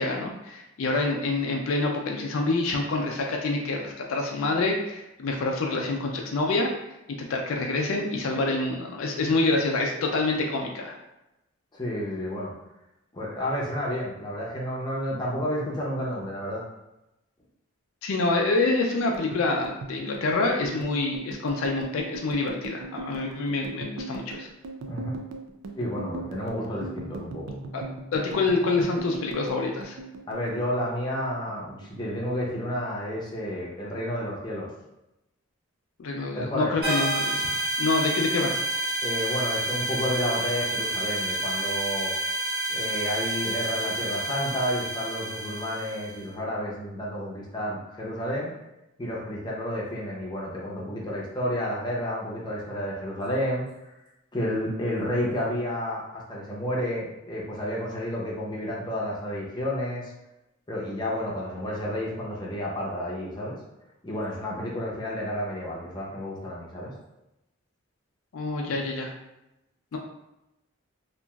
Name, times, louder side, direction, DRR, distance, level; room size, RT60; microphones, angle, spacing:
voice 1, 0.0-6.7 7.2-11.0 18.0-24.5 27.7-27.8 28.1-30.0 36.0-38.6 68.3-69.1 69.9-70.0, left 3 dB, 70° left, 1 dB, 0.4 m, -27 dB
voice 2, 11.7-12.5 13.1-16.6 24.9-25.2 25.8-27.6 30.3-34.7 36.3-36.7 39.0-42.1 42.7-48.5 49.0-53.9 54.3-60.1 60.7-63.6 64.0-66.9, equal, 20° left, -4 dB, 0.5 m, -31 dB
sound 1, 19.0-31.6 31.8-32.9 33.2-33.5 33.8-34.5, right 3 dB, 75° right, 0.4 m, -39 dB
sound 2, 36.8-46.2, right 1 dB, 50° right, 0.8 m, -29 dB
2.9 x 2.4 x 2.3 m, 0.92 s
head